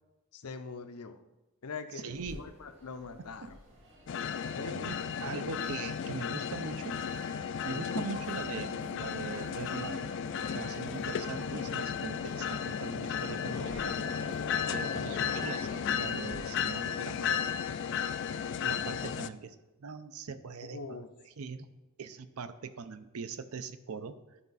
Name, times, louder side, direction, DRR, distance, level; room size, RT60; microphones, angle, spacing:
voice 1, 0.3-1.2 1.6-3.6 4.5-4.8 5.2-5.5 13.3-13.8 15.1-15.5 20.6-21.1, left 4 dB, 90° left, 9 dB, 0.6 m, -43 dB
voice 2, 1.9-2.5 3.4-3.6 4.6-7.0 7.6-10.2 10.5-14.0 14.7-17.5 18.6-21.0 21.4-21.7 22.0-24.2, right 4 dB, 75° right, 12 dB, 0.6 m, -41 dB
sound 1, 2.1-16.4, right 1 dB, 55° right, 2.5 m, -51 dB
sound 2, 4.1-19.3, left 7 dB, 55° left, 0.3 m, -34 dB
11.5 x 4.9 x 4.1 m, 1.0 s
head